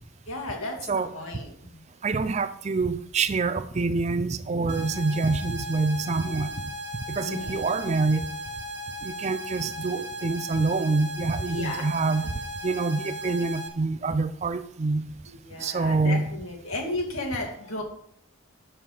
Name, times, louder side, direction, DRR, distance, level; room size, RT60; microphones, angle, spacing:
voice 1, 0.3-1.8 2.1-2.2 7.2-7.7 11.5-11.9 15.3-17.8, left 2 dB, 75° left, 2.1 m, -34 dB
voice 2, 2.0-6.6 7.1-8.3 9.0-12.2 12.6-15.1 15.6-16.3, right 3 dB, 30° right, 0.4 m, -26 dB
sound 1, 4.7-13.7, equal, 55° right, 1.1 m, -37 dB
6.6 x 5.5 x 7.1 m
head